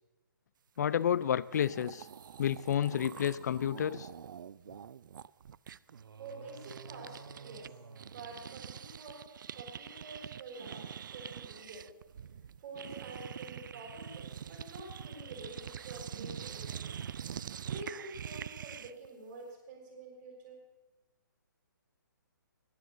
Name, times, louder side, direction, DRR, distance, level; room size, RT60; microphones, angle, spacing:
voice 1, 0.8-2.1 2.4-4.1, left 9 dB, 50° left, 19 dB, 0.4 m, -30 dB
sound 1, 1.2-1.3 1.5-7.7 8.0-19.1, right 8 dB, 65° right, 0.4 m, -45 dB
sound 2, 5.9-9.2, right 5 dB, 85° right, 0.8 m, -52 dB
voice 2, 6.2-7.7 8.1-9.2 9.5-11.9 12.6-17.0 17.7-20.6, right 2 dB, 40° right, -1 dB, 6.0 m, -48 dB
12.5 x 10.5 x 6.7 m, 1.2 s
hypercardioid pair, 150°, 11 cm